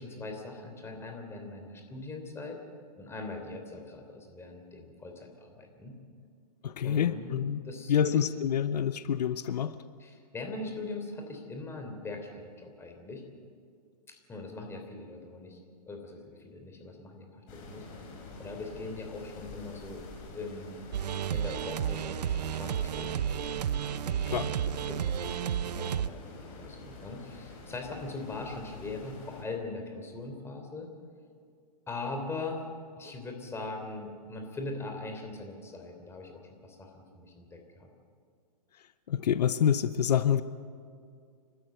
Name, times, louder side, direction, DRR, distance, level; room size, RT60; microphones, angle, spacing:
voice 1, 0.0-2.6 3.0-6.0 6.8-8.2 10.0-13.2 14.1-15.6 15.9-18.1 18.4-20.0 20.3-20.8 21.3-23.4 24.1-25.4 25.7-30.9 31.9-32.6 33.0-37.9, left 3 dB, 10° left, 3 dB, 3.3 m, -41 dB
voice 2, 6.6-7.6 7.9-9.7 24.3-24.8 39.1-40.4, left 9 dB, 85° left, 13 dB, 0.9 m, -27 dB
sound 1, 17.5-29.4, left 3 dB, 40° left, 5.3 m, -47 dB
sound 2, 20.9-26.1, right 9 dB, 90° right, 0.7 m, -32 dB
29.5 x 13.0 x 7.8 m, 2.3 s
hypercardioid pair, 140°, 21 cm